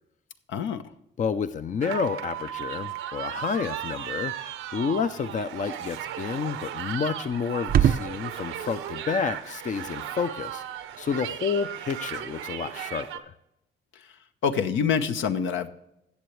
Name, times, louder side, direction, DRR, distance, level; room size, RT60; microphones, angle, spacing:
voice 1, 0.5-0.8 13.9-14.2 14.4-15.7, left 7 dB, 75° left, 8 dB, 0.9 m, -26 dB
voice 2, 1.2-4.3 4.7-10.6 11.0-13.3, left 6 dB, 40° left, 12 dB, 0.5 m, -30 dB
sound 1, 1.8-13.2, right 11 dB, 90° right, 0.9 m, -36 dB
sound 2, 3.6-12.5, right 9 dB, 50° right, 0.4 m, -33 dB
17.0 x 6.9 x 3.2 m, 0.82 s
cardioid pair, 90°, 20 cm